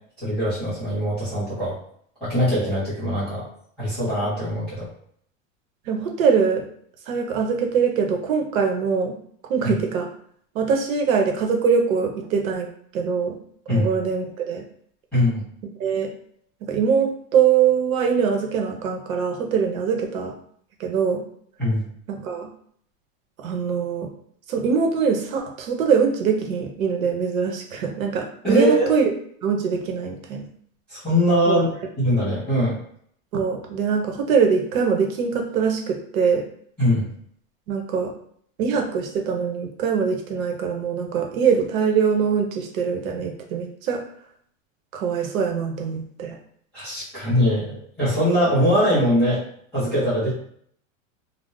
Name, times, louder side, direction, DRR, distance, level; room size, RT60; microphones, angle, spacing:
voice 1, 0.2-1.8 2.2-3.5 3.8-4.9 9.6-9.7 13.7-13.9 15.1-15.5 21.6-21.9 28.4-28.9 30.9-31.7 32.0-32.8 36.8-37.1 46.7-49.4 49.7-50.3, equal, 5° left, -17 dB, 0.4 m, -21 dB
voice 2, 5.9-6.7 7.1-9.2 9.5-10.1 10.5-12.7 12.9-13.4 13.7-14.6 15.8-16.1 16.7-20.3 20.8-21.2 22.1-22.5 23.4-24.1 24.5-29.1 29.4-30.4 31.5-31.6 33.3-36.4 37.7-38.1 38.6-44.0 44.9-46.4, right 6 dB, 80° right, 2 dB, 0.8 m, -23 dB
2.4 x 2.0 x 3.7 m, 0.62 s
supercardioid pair, 180°, 40 cm